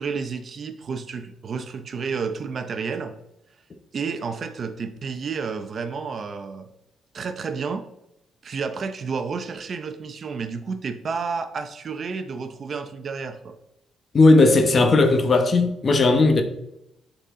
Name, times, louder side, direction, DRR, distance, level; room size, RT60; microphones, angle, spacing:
voice 1, 0.0-3.1 3.9-6.7 7.1-7.8 8.4-13.6, right 5 dB, 50° right, 0.7 m, -31 dB
voice 2, 14.1-16.4, left 3 dB, 40° left, 1.0 m, -16 dB
8.1 x 4.2 x 3.7 m
cardioid pair, 90°, 0 cm